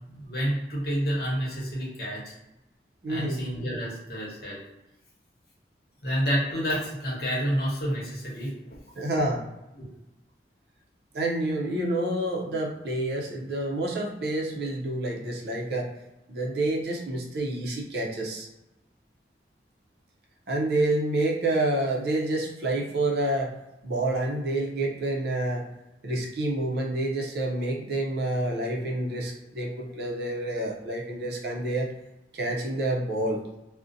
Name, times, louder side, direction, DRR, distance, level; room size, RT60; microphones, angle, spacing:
voice 1, 0.1-2.3 3.1-4.6 6.0-8.8 9.7-9.8, equal, 60° left, -5 dB, 0.9 m, -29 dB
voice 2, 3.0-3.4 9.0-9.4 11.1-15.9 16.3-18.5 20.5-23.6 23.8-25.6 26.0-31.9 32.3-33.4, right 1 dB, 65° right, -1 dB, 0.5 m, -28 dB
2.5 x 2.1 x 2.6 m, 0.95 s
head